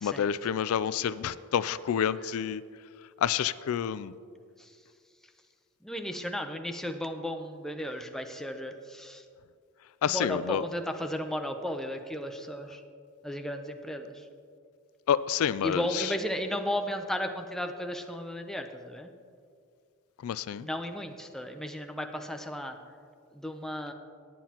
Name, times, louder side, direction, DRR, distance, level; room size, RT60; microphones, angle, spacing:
voice 1, 0.0-2.6 3.2-4.1 10.0-10.6 15.1-16.1 20.2-20.7, left 8 dB, 70° left, 16 dB, 0.3 m, -28 dB
voice 2, 5.8-9.2 10.0-12.8 13.2-14.3 15.6-19.1 20.6-22.8 23.3-23.9, equal, ahead, 5 dB, 0.5 m, -34 dB
18.0 x 9.2 x 2.9 m, 2.2 s
head